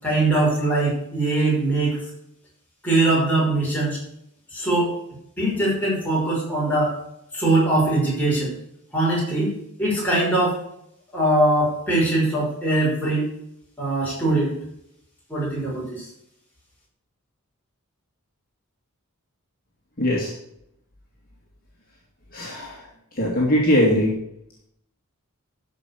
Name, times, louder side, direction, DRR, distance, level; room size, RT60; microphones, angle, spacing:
voice 1, 0.0-2.0 2.8-4.0 4.5-4.9 5.4-6.9 7.3-8.5 8.9-9.5 9.8-10.6 11.1-13.3 13.8-14.5 15.3-16.1, right 2 dB, 5° left, -6 dB, 5.6 m, -21 dB
voice 2, 20.0-20.3 22.3-22.8 23.2-24.1, equal, 40° left, -4 dB, 2.4 m, -20 dB
13.0 x 5.6 x 6.9 m, 0.76 s
head